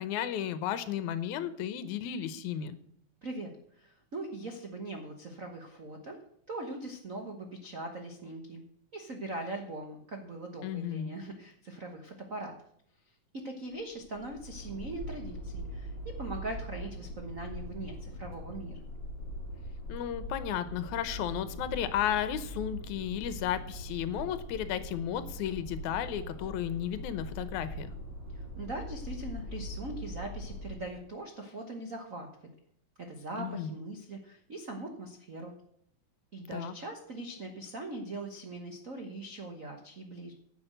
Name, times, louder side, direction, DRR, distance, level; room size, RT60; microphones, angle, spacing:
voice 1, 0.0-2.8 10.6-11.1 19.9-27.9 33.4-33.7 36.5-36.7, left 10 dB, 75° left, 13 dB, 2.2 m, -33 dB
voice 2, 3.2-6.2 6.5-8.6 8.9-12.5 13.3-18.8 28.3-32.3 33.0-35.5 36.3-40.3, right 2 dB, 75° right, 3 dB, 0.7 m, -41 dB
sound 1, 13.7-31.0, equal, 20° left, 3.7 m, -42 dB
10.5 x 7.0 x 7.9 m, 0.69 s
omnidirectional pair, 3.6 m